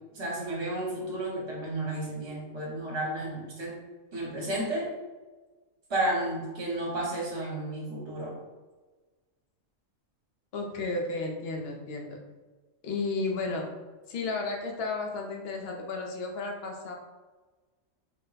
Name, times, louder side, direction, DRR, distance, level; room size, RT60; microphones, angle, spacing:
voice 1, 0.0-3.8 4.1-4.9 5.9-8.4, right 1 dB, 55° right, -4 dB, 1.4 m, -32 dB
voice 2, 10.5-12.2 12.8-13.7 14.1-16.9, left 3 dB, 55° left, 1 dB, 0.8 m, -33 dB
3.9 x 2.2 x 3.9 m, 1.3 s
omnidirectional pair, 1.4 m